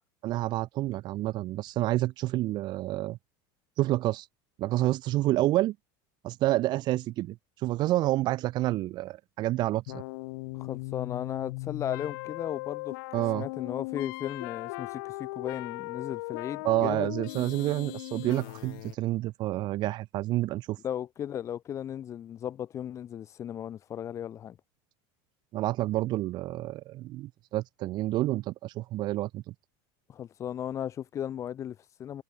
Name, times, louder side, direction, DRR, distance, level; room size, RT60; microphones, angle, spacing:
voice 1, 0.2-3.2 3.8-4.3 4.6-5.7 6.2-7.4 7.6-10.0 13.1-13.5 16.6-20.8 25.5-29.4, right 16 dB, 35° right, 4.7 m, -28 dB
sound 1, 9.9-19.0, left 26 dB, 65° left, 4.3 m, -38 dB
voice 2, 10.5-13.0 13.3-17.1 20.8-24.6 30.1-32.2, left 10 dB, 25° left, 4.8 m, -36 dB
cardioid pair, 175°, 12 cm